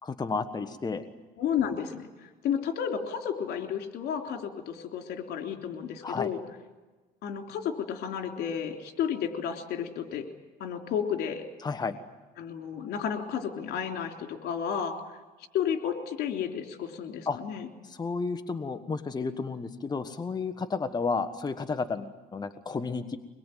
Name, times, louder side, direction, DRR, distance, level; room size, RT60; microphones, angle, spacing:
voice 1, 0.0-1.0 6.0-6.3 11.6-12.0 17.3-17.4 17.8-23.2, left 4 dB, 25° left, 7 dB, 1.4 m, -32 dB
voice 2, 1.4-2.1 2.4-6.4 7.2-10.3 10.6-11.4 12.4-15.0 15.5-17.7, left 8 dB, 75° left, 4 dB, 3.5 m, -32 dB
24.0 x 22.0 x 9.3 m, 1.2 s
cardioid pair, 110°, 17 cm